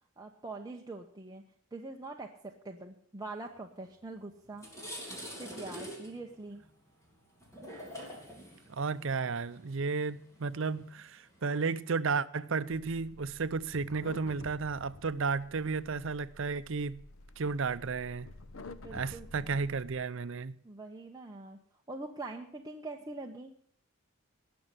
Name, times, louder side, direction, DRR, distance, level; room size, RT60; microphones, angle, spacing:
voice 1, 0.2-1.4 1.7-4.7 5.4-6.6 18.8-19.5 20.6-21.6 21.9-23.5, right 2 dB, 15° right, 0.9 m, -44 dB
sound 1, 4.0-4.1 4.4-11.8, equal, 15° left, 3.4 m, -46 dB
voice 2, 8.7-17.0 17.4-18.3 18.9-20.6, right 4 dB, 60° right, 0.6 m, -33 dB
sound 2, 12.7-20.0, left 2 dB, 70° left, 0.8 m, -51 dB
18.5 x 6.7 x 7.6 m
head